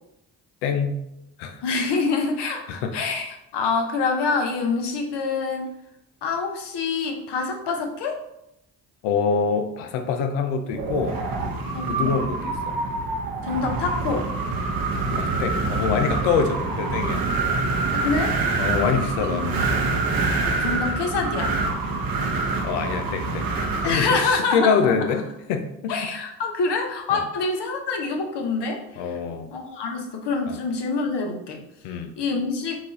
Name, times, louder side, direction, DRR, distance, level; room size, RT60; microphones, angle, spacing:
voice 1, 0.6-1.0 1.4-1.6 2.8-2.9 9.0-11.2 11.9-12.7 15.2-17.2 18.6-20.0 22.6-23.5 23.8-26.0 27.1-27.2 29.0-29.5 30.5-30.6 31.8-32.1, left 5 dB, 85° left, 6 dB, 0.6 m, -25 dB
voice 2, 1.6-5.7 6.2-8.2 11.7-12.1 13.4-14.3 17.9-18.4 19.2-19.4 20.6-21.6 23.8-25.0 25.9-29.2 29.5-31.7 32.2-32.8, left 4 dB, 65° left, 3 dB, 0.9 m, -26 dB
Wind, 10.7-24.4, right 3 dB, 50° right, 0.8 m, -26 dB
4.6 x 2.5 x 4.0 m, 0.84 s
hypercardioid pair, 45°, 45 cm